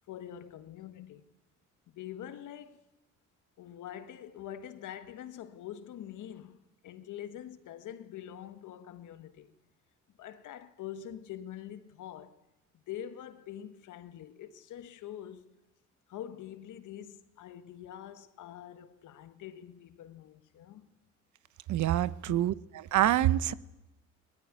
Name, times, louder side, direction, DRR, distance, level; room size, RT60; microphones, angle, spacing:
voice 1, 0.1-1.3 1.9-2.8 3.6-9.5 10.1-12.4 12.7-15.6 16.1-20.9 22.3-22.5, left 10 dB, 80° left, 1.5 m, -45 dB
voice 2, 21.7-23.5, right 13 dB, 75° right, 0.9 m, -26 dB
20.0 x 19.5 x 9.6 m
cardioid pair, 90°, 30 cm